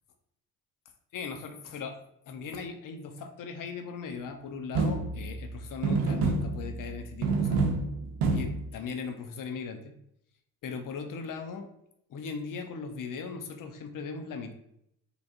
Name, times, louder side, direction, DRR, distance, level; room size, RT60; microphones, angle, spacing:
voice 1, 1.1-1.9 2.3-7.6 8.3-9.9 10.6-11.7 12.1-14.5, left 5 dB, 55° left, 6 dB, 0.8 m, -38 dB
sound 1, 4.7-5.5 5.8-6.9 7.2-8.7, right 3 dB, 90° right, 0.7 m, -28 dB
5.0 x 3.3 x 2.5 m, 0.75 s
supercardioid pair, 65°, 39 cm